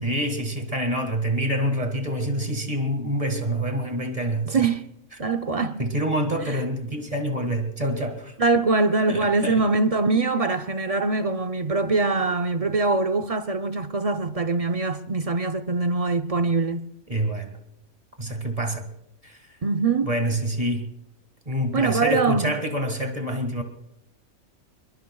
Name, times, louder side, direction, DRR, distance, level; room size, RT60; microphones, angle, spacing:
voice 1, 0.0-4.7 5.8-8.3 9.1-9.6 17.1-17.6 18.2-18.9 19.2-19.4 19.9-20.9 21.5-23.6, right 1 dB, 25° right, 1.9 m, -27 dB
voice 2, 4.5-4.9 5.2-5.8 8.4-16.8 19.6-20.1 21.7-22.5, right 3 dB, 45° right, 0.4 m, -23 dB
29.0 x 21.5 x 2.3 m
omnidirectional pair, 1.5 m